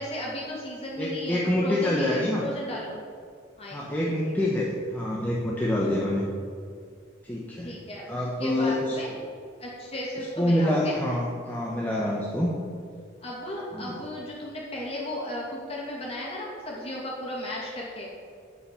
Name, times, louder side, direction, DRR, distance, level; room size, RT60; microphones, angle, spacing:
voice 1, 0.0-3.0 3.6-3.9 4.2-4.3 7.6-9.2 9.6-11.0 13.2-18.1, left 1 dB, 30° left, -4 dB, 2.6 m, -35 dB
voice 2, 1.0-2.4 3.7-6.2 7.2-7.7 8.1-9.0 10.2-12.6 13.7-14.0, left 1 dB, 10° left, -5 dB, 1.0 m, -26 dB
10.0 x 5.6 x 7.1 m, 2.2 s
head